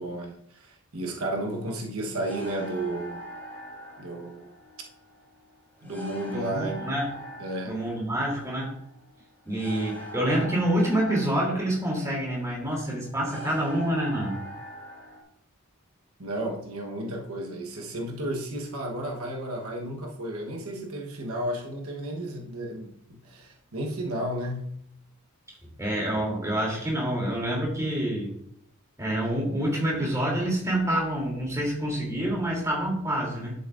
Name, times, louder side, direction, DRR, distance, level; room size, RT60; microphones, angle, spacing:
voice 1, 0.0-3.2 4.0-4.5 5.8-6.9 7.4-7.8 16.2-24.8, right 1 dB, 75° right, 1.2 m, -33 dB
sound 1, 2.1-15.2, equal, 10° left, 2.7 m, -43 dB
voice 2, 6.3-7.1 7.6-8.8 9.4-14.4 25.8-28.3 29.0-33.5, right 1 dB, 15° right, 3.1 m, -27 dB
10.5 x 8.2 x 2.6 m
head